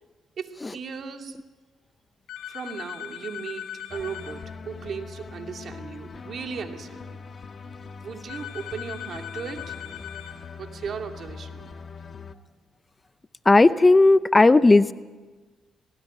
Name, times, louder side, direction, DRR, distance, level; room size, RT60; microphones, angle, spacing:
voice 1, 0.4-1.4 2.5-7.2 8.0-9.8 10.6-11.7, right 6 dB, 55° right, 4 dB, 2.5 m, -37 dB
sound 1, 2.3-4.4 8.3-10.4, left 11 dB, 75° left, 4.8 m, -39 dB
sound 2, 3.9-12.4, left 4 dB, 45° left, 1.2 m, -42 dB
voice 2, 13.5-14.9, left 2 dB, 20° left, 14 dB, 0.6 m, -15 dB
19.5 x 18.5 x 9.1 m, 1.3 s
cardioid pair, 90°, 0 cm